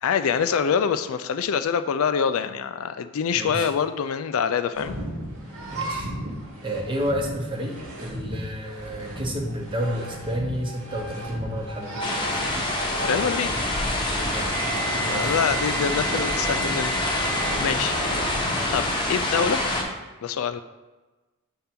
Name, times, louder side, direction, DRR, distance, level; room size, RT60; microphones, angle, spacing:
voice 1, 0.0-5.0 13.0-13.5 15.1-19.6 20.2-20.6, left 7 dB, 75° left, 10 dB, 0.4 m, -26 dB
voice 2, 3.3-3.7 5.7-6.1 6.6-12.4 14.2-14.6 15.0-15.6, equal, 20° right, 1 dB, 0.8 m, -31 dB
sound 1, 4.7-19.5, right 1 dB, 90° right, 1.8 m, -35 dB
sound 2, 12.0-19.8, left 1 dB, 20° left, 0.9 m, -26 dB
Wind instrument woodwind instrument, 14.2-17.7, right 4 dB, 45° right, 1.1 m, -34 dB
5.4 x 3.6 x 5.8 m, 1.2 s
head